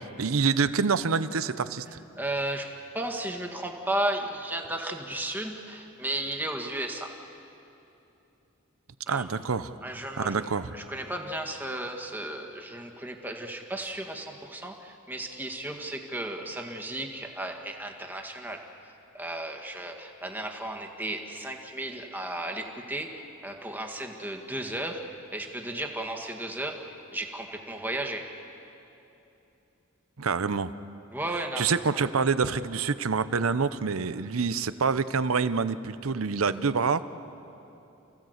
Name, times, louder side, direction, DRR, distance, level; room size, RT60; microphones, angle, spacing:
voice 1, 0.2-2.0 9.1-9.8 10.2-10.7 30.2-30.7 31.6-37.0, right 5 dB, 90° right, 14 dB, 0.7 m, -26 dB
voice 2, 2.2-2.7 2.9-7.1 9.1-9.2 9.8-10.4 10.7-26.8 27.1-28.2 31.1-31.7, right 1 dB, 10° right, 2 dB, 1.8 m, -34 dB
29.0 x 16.0 x 8.1 m, 2.9 s
head